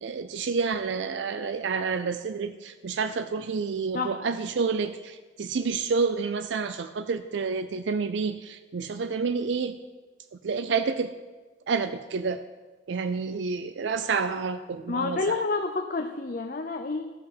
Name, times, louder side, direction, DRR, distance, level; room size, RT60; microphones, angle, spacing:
voice 1, 0.0-9.8 10.3-11.1 11.7-12.4 12.9-15.4, right 5 dB, 70° right, 11 dB, 0.4 m, -29 dB
voice 2, 14.9-17.1, left 3 dB, 45° left, 5 dB, 0.6 m, -29 dB
14.5 x 6.1 x 6.0 m, 1.3 s
head